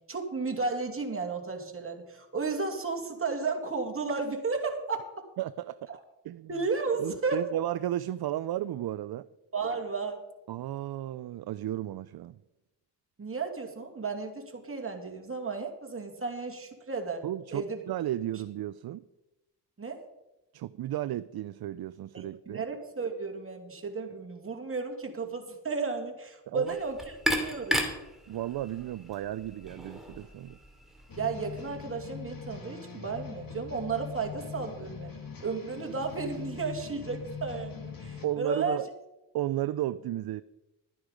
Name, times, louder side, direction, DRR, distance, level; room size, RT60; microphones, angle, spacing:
voice 1, 0.1-5.2 5.9-6.0 6.5-7.5 9.5-10.2 13.2-17.2 17.5-17.8 19.8-20.0 22.1-27.0 27.4-27.9 31.2-38.8, right 4 dB, 30° right, 2 dB, 2.4 m, -33 dB
voice 2, 5.4-5.9 6.2-6.5 7.0-9.3 10.5-12.4 17.2-19.0 20.5-22.6 26.5-26.7 28.3-30.6 38.2-38.9 39.3-40.4, right 13 dB, 60° right, 16 dB, 0.5 m, -34 dB
sound 1, 26.7-31.8, equal, ahead, 2.7 m, -35 dB
sound 2, 31.1-38.3, left 6 dB, 50° left, 2.7 m, -42 dB
12.5 x 9.6 x 5.2 m, 0.99 s
cardioid pair, 75°, 44 cm